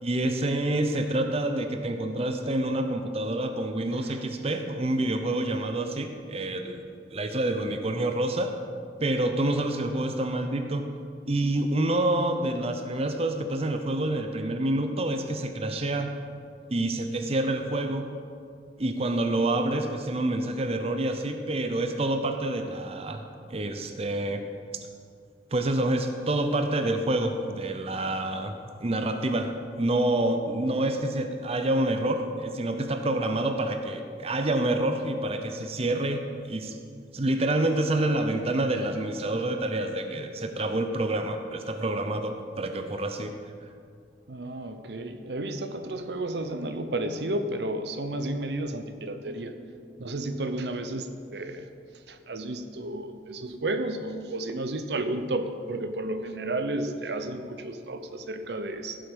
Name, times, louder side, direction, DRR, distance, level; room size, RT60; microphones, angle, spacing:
voice 1, 0.0-8.5 9.0-10.9 11.3-16.1 16.7-18.1 18.8-23.2 23.5-24.4 25.5-29.5 29.8-36.8 37.1-43.3 49.3-49.4 50.2-50.3 53.5-53.6, right 1 dB, 35° right, 6 dB, 0.7 m, -27 dB
voice 2, 3.9-4.3 44.3-49.5 50.0-51.7 52.1-59.0, right 2 dB, 70° right, 8 dB, 0.7 m, -32 dB
15.5 x 7.6 x 5.3 m, 2.3 s
head